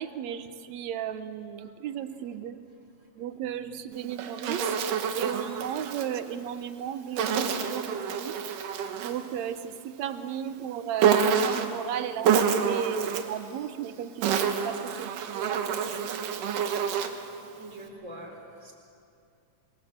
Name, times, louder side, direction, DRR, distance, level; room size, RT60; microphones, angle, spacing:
voice 1, 0.0-2.6 3.2-4.7 5.1-8.4 9.0-16.1, right 9 dB, 70° right, 10 dB, 2.0 m, -35 dB
Insect, 3.9-6.1 7.2-9.2 11.0-11.8 12.2-13.4 14.0-17.3, right 7 dB, 85° right, 2.8 m, -27 dB
voice 2, 17.6-18.7, right 1 dB, 20° right, 1 dB, 4.0 m, -44 dB
25.5 x 23.0 x 7.4 m, 2.5 s
omnidirectional pair, 3.7 m